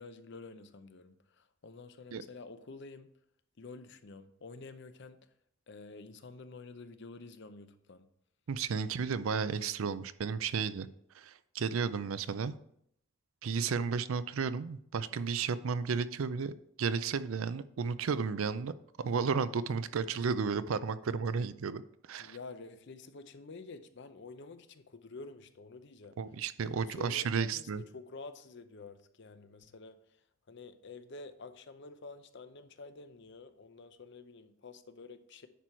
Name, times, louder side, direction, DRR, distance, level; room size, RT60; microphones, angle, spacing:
voice 1, 0.0-3.1 3.6-5.3 5.7-8.1 22.2-26.2 26.6-30.0 30.5-35.5, left 3 dB, 55° left, 0.6 m, -49 dB
voice 2, 8.5-10.9 11.1-12.6 13.4-18.7 19.0-21.8 22.1-22.4 26.2-27.8, right 5 dB, 75° right, 0.4 m, -33 dB
10.0 x 4.6 x 4.4 m
head